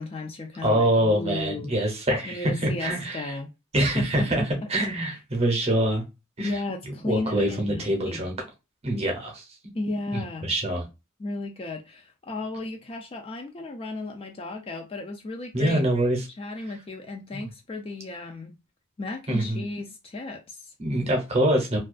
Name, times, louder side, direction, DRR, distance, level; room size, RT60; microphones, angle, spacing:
voice 1, 0.0-1.7 2.2-3.5 4.0-4.5 6.4-8.2 9.7-10.5 11.2-15.8 16.4-18.6 19.0-20.7, left 2 dB, 25° left, 0.3 m, -34 dB
voice 2, 0.6-3.3 3.7-4.4 4.7-6.0 6.4-6.5 7.0-8.3 8.8-9.4 10.1-10.9 15.5-16.3 17.3-17.5 19.3-19.6 20.8-21.8, right 1 dB, 30° right, 0.7 m, -25 dB
2.3 x 2.3 x 2.3 m
head